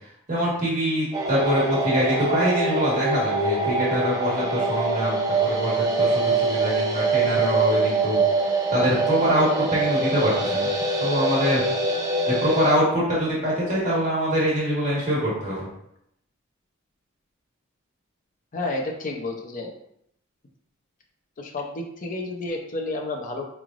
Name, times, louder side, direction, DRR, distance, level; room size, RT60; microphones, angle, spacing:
voice 1, 0.3-10.7 11.0-11.7 12.3-15.7, equal, 40° right, -7 dB, 1.4 m, -24 dB
sound 1, 1.1-12.8, right 3 dB, 20° right, 0.6 m, -24 dB
voice 2, 18.5-19.7 21.4-23.4, left 2 dB, 40° left, 1 dB, 0.6 m, -30 dB
4.9 x 3.1 x 2.5 m, 0.75 s
head